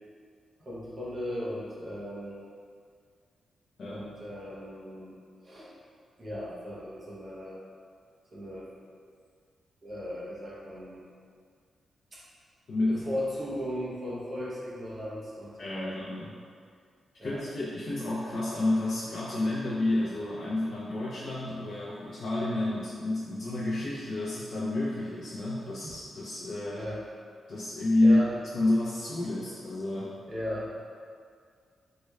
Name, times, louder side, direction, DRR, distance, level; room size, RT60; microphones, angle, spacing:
voice 1, 0.6-2.4 3.8-5.7 6.2-7.6 8.3-8.7 9.8-11.0 12.1-12.2 12.9-16.1 17.2-17.4 25.8-25.9 26.7-27.0 28.0-28.3 30.3-30.7, equal, 30° right, -7 dB, 0.7 m, -37 dB
voice 2, 12.7-13.1 15.6-16.3 17.2-26.8 27.5-28.2 28.5-30.1, left 2 dB, 50° left, -9 dB, 0.5 m, -29 dB
4.4 x 2.2 x 2.2 m, 2.2 s
wide cardioid pair, 175°, 0 cm